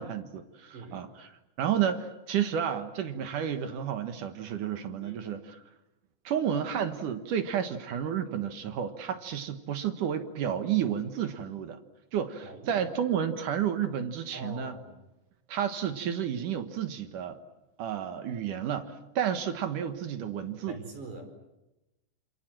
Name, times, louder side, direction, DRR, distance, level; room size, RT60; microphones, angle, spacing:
voice 1, 0.0-1.3 1.6-5.6 6.2-11.8 12.1-14.7 15.5-17.4 17.8-20.8, right 9 dB, 65° right, 8 dB, 2.2 m, -31 dB
voice 2, 12.4-12.9 14.3-14.9 20.7-21.3, right 2 dB, 45° right, 5 dB, 5.9 m, -43 dB
28.0 x 27.0 x 7.6 m, 0.97 s
omnidirectional pair, 5.2 m